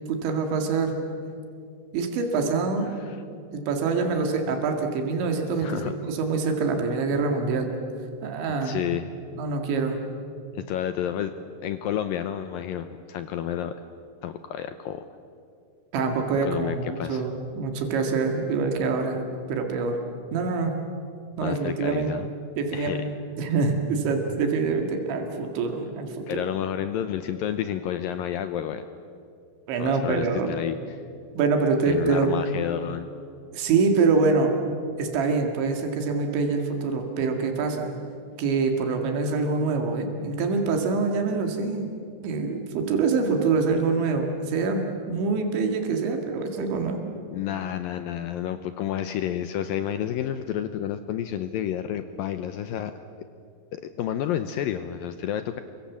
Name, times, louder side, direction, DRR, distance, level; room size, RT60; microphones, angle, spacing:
voice 1, 0.1-1.0 1.9-3.0 3.5-7.7 8.2-8.8 9.4-10.0 15.9-19.2 19.5-20.0 20.3-20.7 21.4-22.1 22.6-23.1 23.4-26.4 29.7-30.5 31.4-32.3 33.5-34.5 35.0-37.9 38.4-41.9 42.2-47.0, right 4 dB, 85° right, 4 dB, 4.5 m, -25 dB
voice 2, 2.8-3.2 5.6-5.9 8.6-9.1 10.5-11.3 11.6-13.7 14.2-15.1 16.4-17.3 21.4-22.3 22.7-23.0 26.3-28.9 29.8-31.0 31.9-33.1 47.3-52.9 53.7-55.6, left 10 dB, 85° left, 10 dB, 2.0 m, -30 dB
30.0 x 24.0 x 7.4 m, 2.4 s
omnidirectional pair, 5.1 m